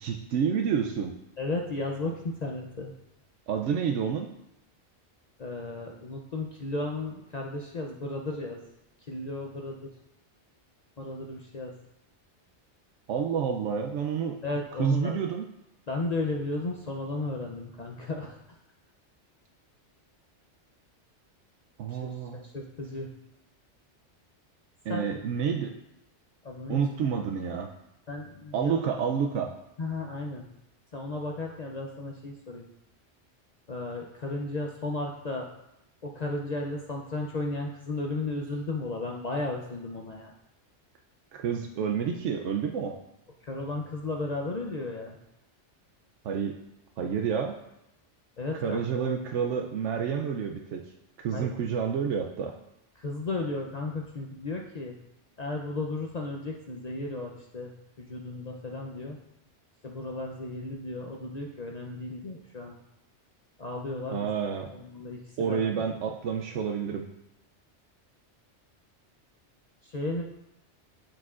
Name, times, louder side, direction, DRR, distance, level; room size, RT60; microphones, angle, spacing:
voice 1, 0.0-1.1 3.5-4.3 13.1-14.4 14.8-15.4 21.8-22.4 24.8-25.8 26.7-27.7 28.5-29.5 41.3-42.9 46.2-46.6 47.0-47.5 48.6-50.8 51.2-52.5 64.1-64.7 65.4-67.1, right 7 dB, 90° right, 2 dB, 0.9 m, -29 dB
voice 2, 1.4-2.9 5.4-8.6 9.1-9.9 11.0-11.7 14.4-15.2 15.9-18.4 21.9-23.1 24.9-25.1 26.4-26.8 28.1-28.8 29.8-30.4 30.9-32.6 33.7-35.5 36.0-40.3 43.4-45.2 48.4-48.8 51.3-51.5 53.0-55.0 55.4-57.7 58.0-59.2 59.8-62.8 63.6-64.3 64.7-65.7 66.0-66.4 69.8-70.2, left 2 dB, 45° left, 0 dB, 0.6 m, -34 dB
12.0 x 4.6 x 2.4 m, 0.86 s
omnidirectional pair, 1.2 m